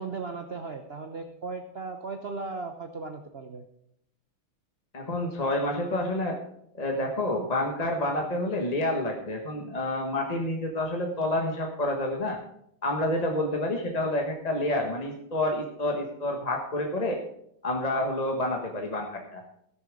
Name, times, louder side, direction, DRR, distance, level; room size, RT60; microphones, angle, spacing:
voice 1, 0.0-3.6, right 4 dB, 50° right, 6 dB, 0.7 m, -37 dB
voice 2, 4.9-6.4 6.8-12.4 12.8-17.2 17.6-19.4, left 1 dB, 25° left, 2 dB, 1.0 m, -28 dB
17.0 x 6.8 x 5.0 m, 0.74 s
omnidirectional pair, 2.3 m